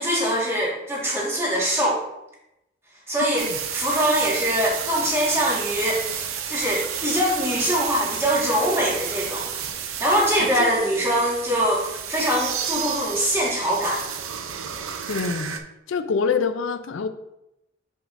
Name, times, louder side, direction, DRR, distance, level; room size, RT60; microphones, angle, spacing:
voice 1, 0.0-2.0 3.1-9.5 9.9-14.0, equal, 15° right, -4 dB, 1.6 m, -23 dB
sound 1, 3.4-15.6, right 8 dB, 90° right, 0.6 m, -31 dB
voice 2, 15.1-15.6 15.9-17.1, left 5 dB, 70° left, 10 dB, 0.4 m, -25 dB
7.0 x 6.0 x 2.5 m, 0.88 s
head